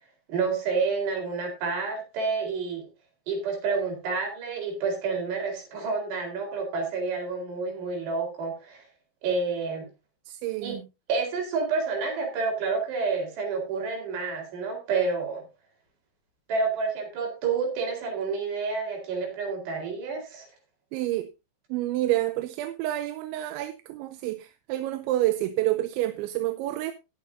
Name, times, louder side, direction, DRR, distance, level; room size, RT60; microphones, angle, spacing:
voice 1, 0.3-2.9 3.3-8.9 9.2-9.9 10.6-10.8 11.1-15.4 16.5-20.5, right 4 dB, 65° right, 6.1 m, -29 dB
voice 2, 10.3-10.8 20.9-21.3 21.7-26.9, right 15 dB, 85° right, 3.0 m, -28 dB
20.0 x 8.4 x 2.7 m
omnidirectional pair, 5.3 m